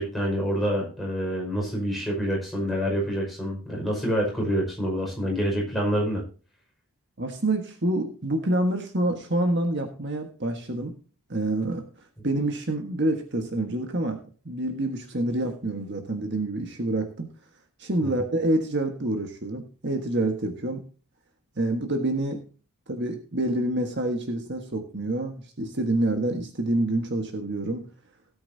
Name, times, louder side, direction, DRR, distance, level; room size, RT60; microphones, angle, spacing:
voice 1, 0.0-6.2 18.0-18.1, equal, ahead, -3 dB, 5.4 m, -27 dB
voice 2, 7.2-10.9 11.3-11.8 12.2-17.3 17.8-20.8 21.6-22.4 22.9-27.9, right 1 dB, 50° right, 4 dB, 1.5 m, -27 dB
17.0 x 8.8 x 2.8 m, 0.37 s
head